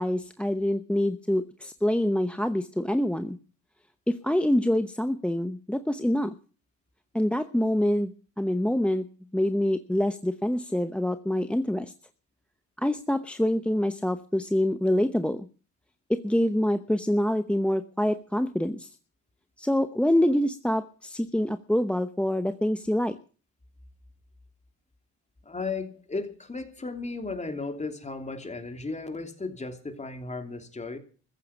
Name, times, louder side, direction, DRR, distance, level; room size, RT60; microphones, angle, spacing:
voice 1, 0.0-3.4 4.1-6.3 7.1-9.0 9.3-11.9 12.8-15.5 16.1-18.9 19.6-23.2, left 1 dB, 5° left, 11 dB, 0.9 m, -26 dB
voice 2, 25.4-31.0, left 3 dB, 25° left, 6 dB, 3.1 m, -35 dB
15.0 x 10.5 x 7.1 m, 0.39 s
cardioid pair, 90°, 30 cm